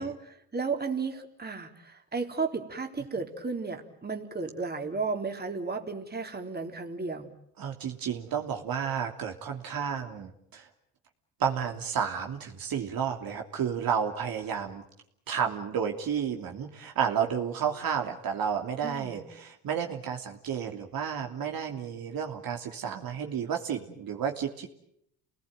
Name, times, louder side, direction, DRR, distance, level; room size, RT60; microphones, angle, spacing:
voice 1, 0.0-7.3 18.8-19.3, right 4 dB, 20° right, 3 dB, 3.8 m, -34 dB
voice 2, 7.6-10.7 11.4-14.8 15.3-24.7, right 7 dB, 55° right, 3 dB, 3.1 m, -31 dB
29.5 x 20.0 x 9.3 m, 0.76 s
hypercardioid pair, 70°, 43 cm